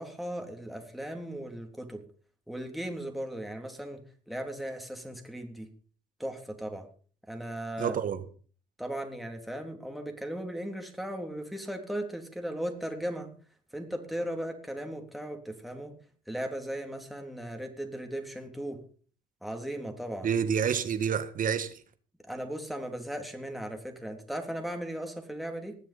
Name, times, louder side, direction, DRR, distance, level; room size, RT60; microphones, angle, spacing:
voice 1, 0.0-2.0 2.5-5.7 6.2-6.9 7.3-8.0 8.8-13.3 13.7-16.0 16.3-18.8 19.4-20.3 22.3-25.8, right 1 dB, ahead, 3.5 m, -37 dB
voice 2, 7.8-8.2 20.2-21.8, right 7 dB, 50° right, 1.6 m, -28 dB
20.0 x 7.5 x 5.4 m
supercardioid pair, 65°, 18 cm